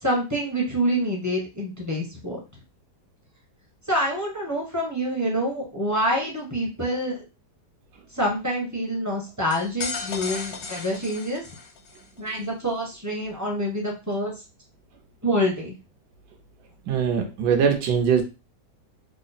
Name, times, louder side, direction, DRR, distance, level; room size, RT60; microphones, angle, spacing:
voice 1, 0.0-2.4 3.9-7.2 8.1-11.4 12.2-14.3 15.2-15.7, equal, 15° right, -2 dB, 0.7 m, -26 dB
sound 1, 9.5-12.0, left 4 dB, 60° left, 0.7 m, -35 dB
voice 2, 16.9-18.2, right 7 dB, 70° right, 4 dB, 1.3 m, -21 dB
3.6 x 2.0 x 4.0 m, 0.28 s
omnidirectional pair, 1.9 m